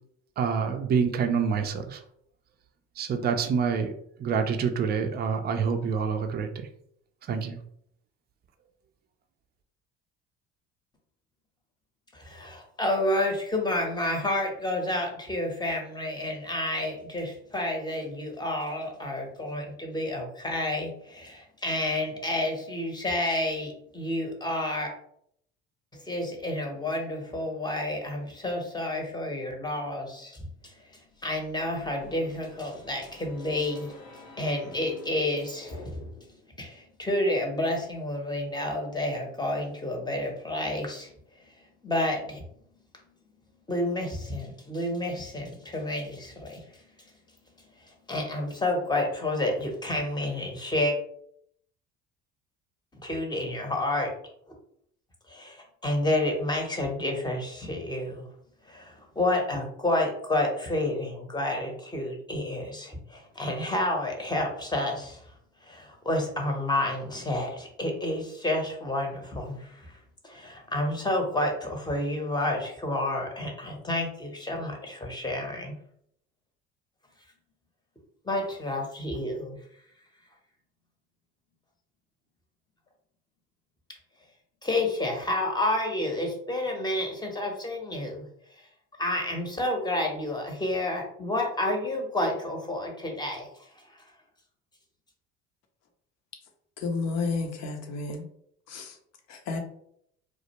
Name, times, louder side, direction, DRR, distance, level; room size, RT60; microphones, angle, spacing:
voice 1, 0.4-2.0 3.0-3.9 4.2-6.7 7.3-7.6, right 6 dB, 30° right, 0.4 m, -27 dB
voice 2, 12.1-24.9 25.9-36.1 36.5-41.1 41.4-41.5 41.8-42.4 43.1-43.2 43.7-46.9 47.8-50.9 53.0-54.1 55.3-58.3 58.7-65.3 65.6-70.0 70.2-75.7 78.2-79.6 84.6-88.3 89.0-93.5, left 1 dB, 15° left, 0.8 m, -30 dB
sound 1, 31.2-36.4, left 3 dB, 85° left, 0.8 m, -49 dB
voice 3, 96.8-98.3 98.7-99.0 99.3-99.6, left 4 dB, 60° left, 0.7 m, -31 dB
2.4 x 2.1 x 2.8 m
hypercardioid pair, 70°, 31 cm